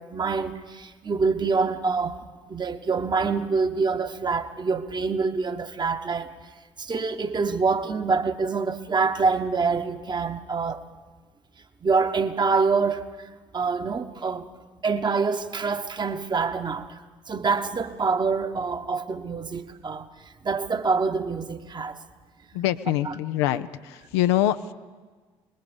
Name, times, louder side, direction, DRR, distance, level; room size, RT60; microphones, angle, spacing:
voice 1, 0.0-6.3 6.8-10.8 11.8-14.5 14.8-17.0 17.3-20.1 20.4-22.0, right 4 dB, 30° right, 1.2 m, -26 dB
voice 2, 22.5-24.7, left 13 dB, 70° left, 0.6 m, -24 dB
27.0 x 20.5 x 5.3 m
figure-of-eight pair, 50°, 14 cm